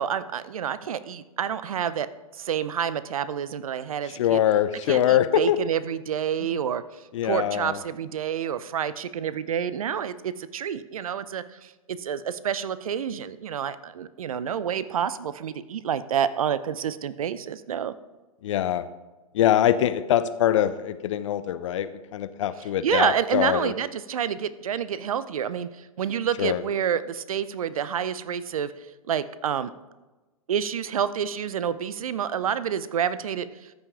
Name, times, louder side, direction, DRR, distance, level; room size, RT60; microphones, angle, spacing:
voice 1, 0.0-2.1 2.3-4.4 4.9-6.8 7.2-17.9 22.6-28.7 29.1-29.7 30.5-33.7, right 8 dB, 70° right, 15 dB, 0.6 m, -28 dB
voice 2, 4.2-5.6 7.1-7.8 18.4-18.8 19.3-23.7 26.4-26.6, left 11 dB, 55° left, 14 dB, 0.6 m, -23 dB
13.5 x 5.6 x 3.6 m, 1.2 s
hypercardioid pair, 115°, 19 cm